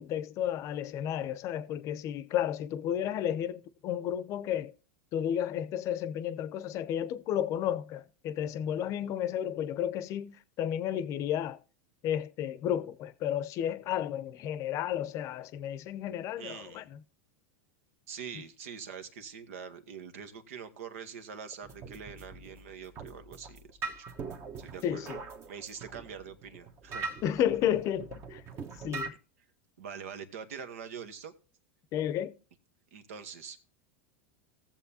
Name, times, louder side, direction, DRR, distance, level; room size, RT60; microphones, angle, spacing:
voice 1, 0.0-4.7 5.1-11.6 12.0-17.0 24.8-25.2 27.2-28.4 28.8-29.1 31.9-32.3, left 10 dB, 45° left, 0.7 m, -32 dB
voice 2, 16.4-16.8 18.1-24.1 24.6-25.2 25.5-27.1 29.8-31.3 32.9-33.6, right 7 dB, 75° right, 1.2 m, -44 dB
sound 1, 21.6-29.1, right 4 dB, 40° right, 1.2 m, -42 dB
18.0 x 7.3 x 2.8 m
hypercardioid pair, 105°, 8 cm